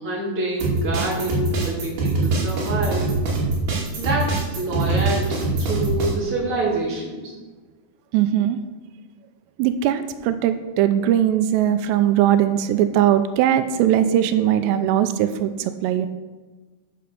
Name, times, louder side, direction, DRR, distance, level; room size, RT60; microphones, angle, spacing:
voice 1, 0.0-3.1 4.0-7.2, right 2 dB, 35° right, -4 dB, 3.5 m, -26 dB
sound 1, 0.6-6.1, right 3 dB, 65° right, 4.5 m, -23 dB
voice 2, 8.1-8.6 9.6-15.5 15.8-16.1, right 11 dB, 90° right, 10 dB, 2.8 m, -19 dB
10.0 x 6.9 x 6.8 m, 1.3 s
omnidirectional pair, 4.9 m